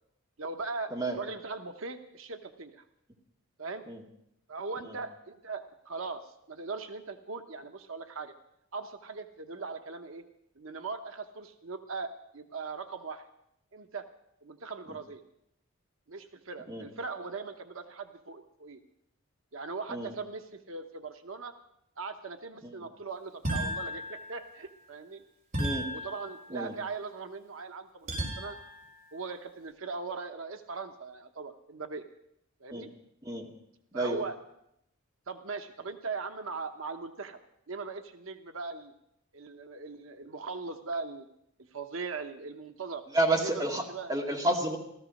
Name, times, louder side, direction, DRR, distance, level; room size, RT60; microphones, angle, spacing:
voice 1, 0.4-2.8 3.6-3.8 4.5-8.3 8.7-10.2 10.6-13.3 13.7-14.1 14.4-15.2 16.1-18.8 19.5-21.5 22.0-25.2 25.9-28.6 29.1-32.0 32.6-32.9 33.9-34.4 35.3-37.4 37.7-38.9 39.3-41.3 41.7-43.0 43.4-44.1, right 4 dB, 80° right, 7 dB, 1.0 m, -39 dB
sound 1, 23.4-24.7 25.5-26.7 28.1-28.9, equal, 35° right, 3.9 m, -35 dB
voice 2, 43.1-43.8 44.1-44.8, right 2 dB, 20° right, 0 dB, 2.3 m, -30 dB
15.5 x 14.0 x 6.4 m, 0.77 s
head